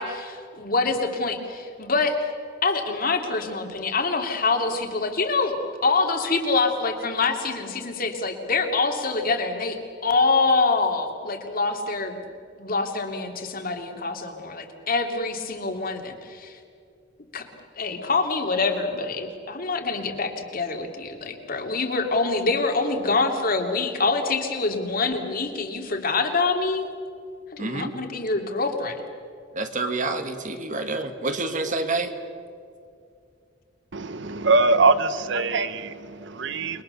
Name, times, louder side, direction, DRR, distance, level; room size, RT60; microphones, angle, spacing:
voice 1, 0.0-2.3 2.6-5.6 5.8-12.2 12.6-16.6 17.3-17.4 17.8-26.9 27.5-29.0, left 3 dB, 50° left, 4 dB, 2.8 m, -25 dB
voice 2, 27.6-27.9 29.6-32.1, right 3 dB, 40° right, 7 dB, 2.0 m, -28 dB
voice 3, 33.9-36.8, right 3 dB, 65° right, 12 dB, 1.0 m, -22 dB
29.5 x 22.0 x 6.9 m, 2.4 s
head